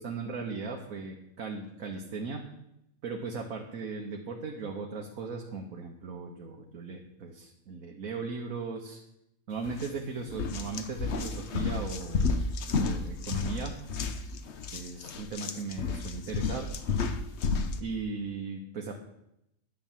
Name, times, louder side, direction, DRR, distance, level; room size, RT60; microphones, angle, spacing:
voice 1, 0.0-2.4 3.0-9.0 9.5-12.5 12.7-13.7 14.7-16.7 17.8-18.9, right 4 dB, 75° right, 1 dB, 1.6 m, -37 dB
sound 1, 9.7-9.9 10.3-17.8, left 4 dB, 55° left, 1.1 m, -31 dB
10.0 x 7.5 x 7.3 m, 0.81 s
omnidirectional pair, 1.5 m